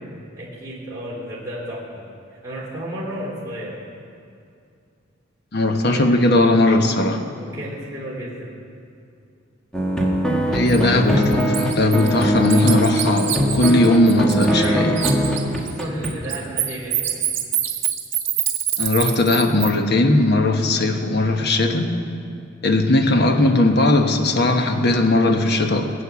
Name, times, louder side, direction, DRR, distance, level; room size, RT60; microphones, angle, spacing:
voice 1, 0.4-2.0 2.3-3.8 5.9-6.1 7.4-8.5 12.2-12.3 14.5-14.9 15.4-17.2, right 1 dB, 15° right, -8 dB, 3.0 m, -32 dB
voice 2, 5.5-7.2 10.5-15.0 18.8-21.9 22.6-25.9, left 2 dB, 55° left, 5 dB, 1.2 m, -18 dB
sound 1, 9.7-16.1, equal, 5° left, 1.7 m, -21 dB
Bird, 10.7-10.8 11.2-14.7 15.0-19.7, right 12 dB, 70° right, 1.6 m, -25 dB
21.5 x 8.8 x 7.0 m, 2.4 s
head